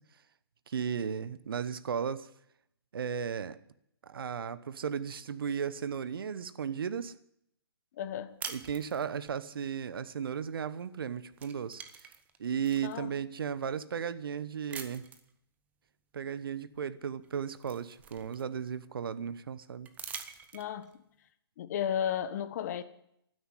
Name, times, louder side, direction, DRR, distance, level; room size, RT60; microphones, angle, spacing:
voice 1, 0.7-2.3 2.9-3.6 4.0-7.1 8.5-11.8 12.4-15.0 16.1-19.9, right 7 dB, 60° right, 1.0 m, -35 dB
voice 2, 7.9-8.4 12.8-13.2 20.5-21.0 21.6-22.8, left 9 dB, 40° left, 1.2 m, -34 dB
sound 1, 8.4-9.4 10.8-11.0 11.3-12.9 13.6-13.7 14.7-15.3 16.7-16.8 17.2-18.8 19.8-20.9, right 7 dB, 10° right, 0.9 m, -45 dB
12.5 x 9.9 x 9.9 m
hypercardioid pair, 140°, 13 cm